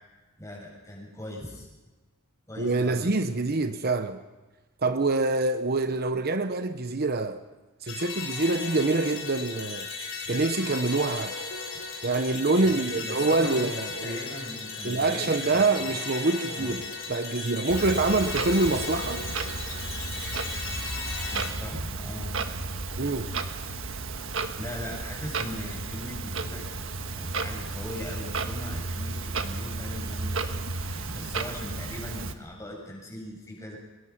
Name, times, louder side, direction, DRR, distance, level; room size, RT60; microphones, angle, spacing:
voice 1, 0.4-1.7 2.5-3.3 12.6-13.6 14.0-16.0 16.5-16.8 21.3-22.3 24.6-33.8, left 1 dB, 15° left, 7.2 m, -40 dB
voice 2, 2.6-4.2 4.8-7.4 7.8-9.9 10.3-11.3 12.0-14.2 14.8-19.2 23.0-23.3, right 3 dB, 45° right, 0.9 m, -26 dB
sound 1, 7.9-21.5, left 4 dB, 60° left, 4.9 m, -36 dB
Clock, 17.7-32.3, right 3 dB, 60° right, 1.5 m, -33 dB
25.5 x 22.0 x 6.0 m
head